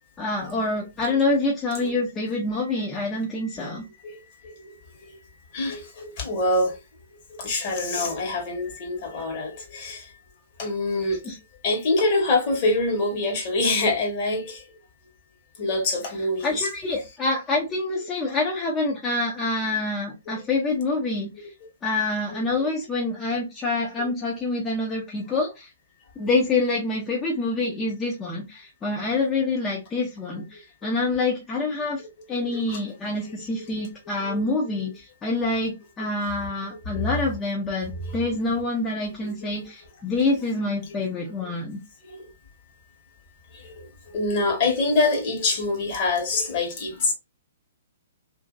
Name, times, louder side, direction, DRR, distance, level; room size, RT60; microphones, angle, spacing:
voice 1, 0.2-3.8 11.2-11.4 16.4-21.5 21.8-25.7 26.2-32.0 32.3-41.8, left 2 dB, 20° left, 0.6 m, -26 dB
voice 2, 3.6-6.8 7.3-10.1 10.6-11.2 11.6-14.6 15.6-16.7 20.3-20.4 22.3-22.4 24.0-24.1 26.2-26.3 30.8-30.9 32.4-32.8 33.6-33.7 34.3-34.5 36.9-37.0 38.1-38.3 39.2-39.3 41.4-41.5 42.1-42.2 43.5-43.7 44.1-47.1, left 2 dB, 45° left, 1.3 m, -26 dB
2.8 x 2.6 x 2.4 m
figure-of-eight pair, 120°, 0 cm